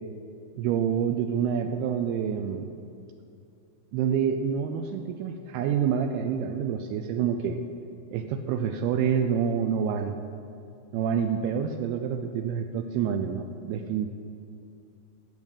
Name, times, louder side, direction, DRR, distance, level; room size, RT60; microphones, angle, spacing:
voice 1, 0.6-2.7 3.9-7.6 8.1-10.2 10.9-14.1, right 7 dB, 90° right, 6 dB, 2.2 m, -27 dB
18.0 x 6.1 x 8.9 m, 2.5 s
omnidirectional pair, 5.3 m